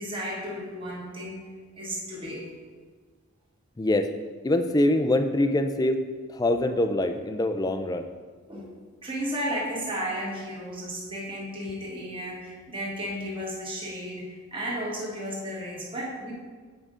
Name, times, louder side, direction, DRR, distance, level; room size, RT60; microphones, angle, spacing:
voice 1, 0.0-1.4 1.8-2.4 8.5-8.7 9.0-16.3, equal, 25° right, -4 dB, 1.5 m, -33 dB
voice 2, 3.8-4.1 4.4-6.0 6.3-8.1, left 1 dB, 20° left, 7 dB, 0.4 m, -24 dB
8.2 x 5.1 x 3.7 m, 1.5 s
head